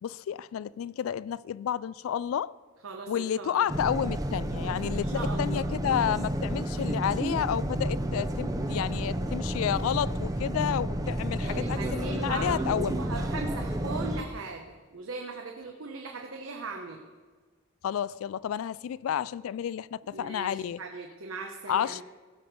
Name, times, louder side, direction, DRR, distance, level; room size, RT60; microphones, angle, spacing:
voice 1, 0.0-2.5 3.1-13.0 17.8-20.8 21.7-22.0, left 9 dB, 85° left, 0.3 m, -31 dB
voice 2, 2.8-3.6 4.8-5.7 11.4-14.6 14.9-17.0 20.1-22.0, right 3 dB, 80° right, 0.9 m, -39 dB
sound 1, 3.7-14.2, right 1 dB, 20° right, 0.6 m, -31 dB
17.0 x 6.1 x 5.2 m
head